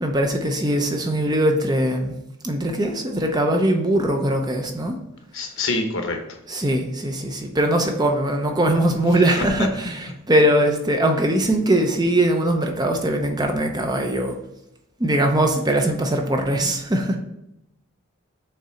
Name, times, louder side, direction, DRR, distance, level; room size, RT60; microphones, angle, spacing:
voice 1, 0.0-2.1 2.4-4.9 6.5-14.3 15.0-17.2, right 1 dB, 20° right, 4 dB, 0.6 m, -21 dB
voice 2, 5.3-6.2 9.1-9.7, left 3 dB, 65° left, 4 dB, 1.0 m, -26 dB
6.6 x 3.7 x 4.3 m, 0.84 s
head